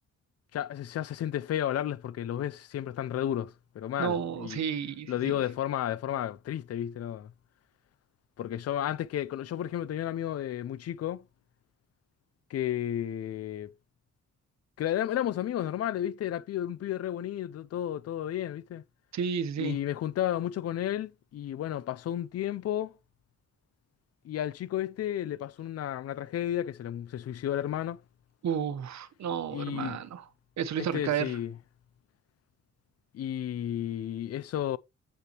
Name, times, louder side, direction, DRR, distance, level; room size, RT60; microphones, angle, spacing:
voice 1, 0.5-4.6 5.1-7.3 8.4-11.2 12.5-13.7 14.8-18.8 19.6-23.0 24.2-28.0 29.5-30.0 30.8-31.5 33.1-34.8, left 11 dB, 55° left, 0.5 m, -32 dB
voice 2, 4.0-5.4 19.1-19.8 28.4-30.2 30.6-31.4, right 8 dB, 70° right, 1.1 m, -32 dB
7.8 x 6.7 x 3.0 m
cardioid pair, 85°, 29 cm